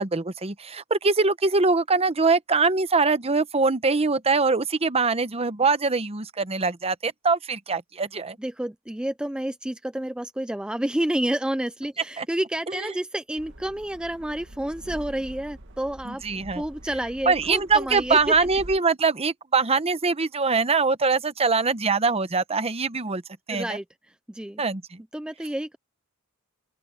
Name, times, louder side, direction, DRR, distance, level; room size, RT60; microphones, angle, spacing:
voice 1, 0.0-8.4 12.2-12.3 12.7-12.9 16.0-16.6 17.3-23.2 23.5-23.7 24.6-25.0, right 4 dB, 30° right, 0.9 m, -23 dB
voice 2, 8.4-16.2 16.6-18.3 23.5-24.6 25.1-25.8, right 1 dB, 5° right, 0.3 m, -29 dB
sound 1, 13.4-18.8, right 1 dB, 60° right, 2.1 m, -44 dB
open air
head